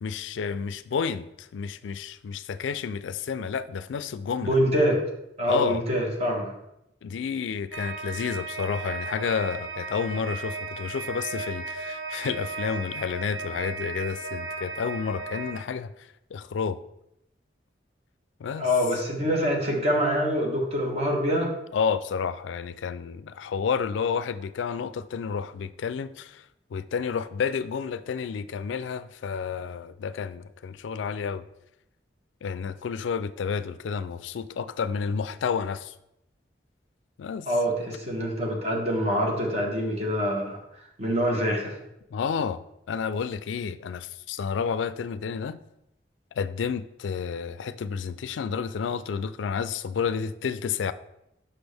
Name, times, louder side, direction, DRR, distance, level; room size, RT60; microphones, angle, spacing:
voice 1, 0.0-4.6 5.4-5.8 7.0-15.9 16.3-16.8 18.4-18.7 21.7-26.4 26.7-31.4 32.4-35.9 37.2-37.5 42.1-42.6 42.9-45.6 46.4-50.9, left 6 dB, 90° left, 14 dB, 0.4 m, -30 dB
voice 2, 4.4-5.0 5.4-6.5 18.6-21.5 37.5-40.6 41.0-41.8, equal, 35° right, 0 dB, 1.3 m, -25 dB
sound 1, 7.7-15.5, right 3 dB, 85° right, 0.8 m, -35 dB
6.1 x 5.6 x 3.4 m, 0.83 s
head